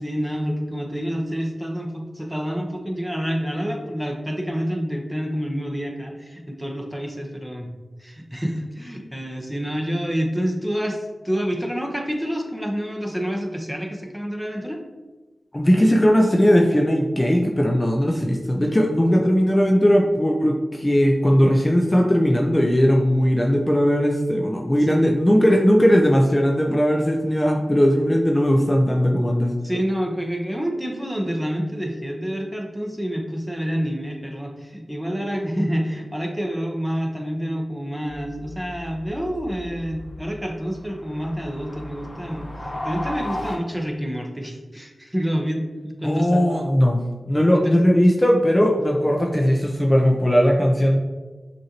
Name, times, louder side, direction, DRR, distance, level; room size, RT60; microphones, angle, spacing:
voice 1, 0.0-7.7 8.0-14.8 24.7-25.0 29.6-42.5 42.8-46.4 47.5-47.8, equal, 10° right, 1 dB, 0.9 m, -28 dB
voice 2, 15.5-29.5 46.0-47.0 47.3-51.0, equal, 25° left, 0 dB, 0.6 m, -18 dB
sound 1, 38.1-43.6, left 1 dB, 50° left, 0.9 m, -35 dB
6.2 x 2.6 x 2.9 m, 1.2 s
cardioid pair, 40°, 0 cm